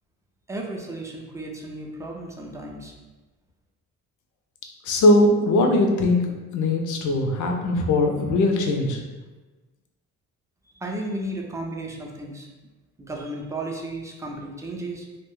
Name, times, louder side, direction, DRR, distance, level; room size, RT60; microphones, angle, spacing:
voice 1, 0.5-2.9 10.7-12.5 13.0-15.2, right 1 dB, 10° right, 0 dB, 0.5 m, -34 dB
voice 2, 4.8-6.2 6.5-9.0, left 2 dB, 80° left, 2 dB, 0.6 m, -20 dB
2.4 x 2.1 x 3.6 m, 1.2 s
cardioid pair, 90°, 30 cm